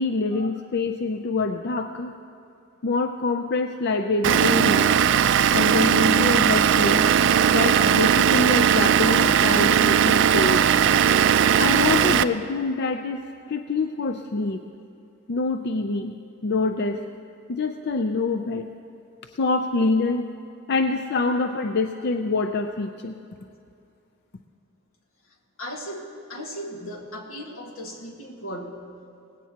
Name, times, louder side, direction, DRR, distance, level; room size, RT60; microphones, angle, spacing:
voice 1, 0.0-2.1 2.8-4.9 5.5-7.1 7.5-10.6 11.6-13.2 13.5-14.6 15.3-16.2 16.4-17.0 17.5-18.7 19.3-20.3 20.7-23.2, left 3 dB, 55° left, 6 dB, 0.5 m, -25 dB
Vehicle / Engine, 4.2-12.2, right 8 dB, 65° right, 0.4 m, -18 dB
voice 2, 11.1-11.4 25.6-26.0 26.3-28.8, equal, 85° left, 1 dB, 1.8 m, -36 dB
18.5 x 16.5 x 2.9 m, 2.6 s
head